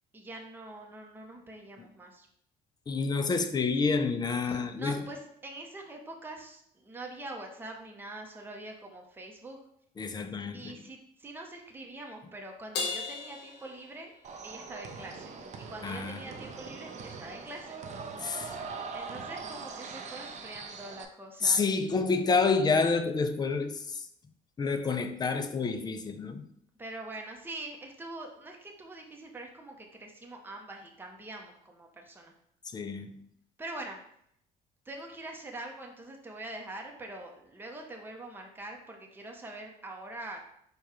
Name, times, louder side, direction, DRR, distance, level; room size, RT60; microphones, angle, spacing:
voice 1, 0.1-2.3 4.4-9.6 10.5-14.1 14.4-15.4 15.7-17.8 18.9-21.6 26.8-32.3 33.6-34.0 34.9-40.5, right 2 dB, 10° right, 0.8 m, -44 dB
voice 2, 2.9-5.0 10.0-10.8 15.8-16.2 18.2-18.5 21.4-23.8 24.6-26.4 32.7-33.1, left 4 dB, 25° left, 0.5 m, -28 dB
Crash cymbal, 12.7-14.5, left 4 dB, 80° left, 0.9 m, -36 dB
sound 1, 14.2-21.0, right 5 dB, 45° right, 0.5 m, -42 dB
4.5 x 2.4 x 4.8 m
cardioid pair, 110°, 17 cm